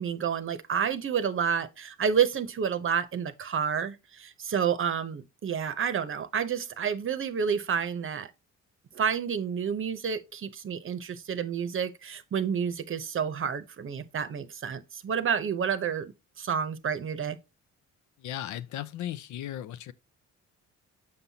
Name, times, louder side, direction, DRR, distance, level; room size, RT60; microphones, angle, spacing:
voice 1, 0.0-8.3 8.9-17.4, right 7 dB, 45° right, 0.8 m, -29 dB
voice 2, 18.2-19.9, left 12 dB, 75° left, 0.5 m, -36 dB
6.7 x 5.6 x 2.8 m
cardioid pair, 90°, 30 cm